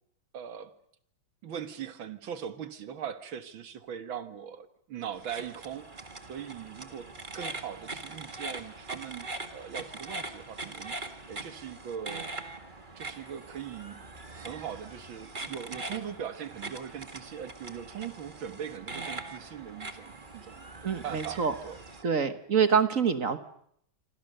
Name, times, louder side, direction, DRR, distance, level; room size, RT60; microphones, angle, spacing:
voice 1, 0.3-0.7 1.4-12.3 13.0-14.0 14.3-20.7 21.0-21.8, right 8 dB, 75° right, 2.2 m, -40 dB
sound 1, 5.1-22.0, right 2 dB, 25° right, 2.0 m, -42 dB
voice 2, 20.8-21.5 22.0-23.4, right 6 dB, 45° right, 1.5 m, -26 dB
27.5 x 26.0 x 6.7 m
omnidirectional pair, 2.2 m